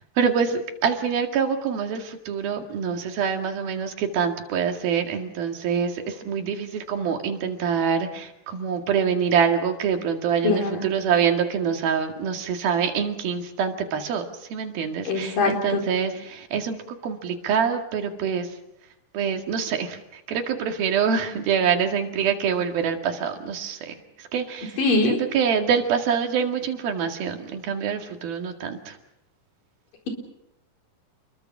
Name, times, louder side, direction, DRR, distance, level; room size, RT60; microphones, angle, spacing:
voice 1, 0.2-14.3 14.5-18.5 19.1-29.0, right 7 dB, 90° right, 5 dB, 4.0 m, -25 dB
voice 2, 10.4-10.8 15.1-15.5 24.8-25.2, left 3 dB, 65° left, 3 dB, 5.9 m, -22 dB
29.0 x 22.0 x 6.1 m, 0.83 s
omnidirectional pair, 4.1 m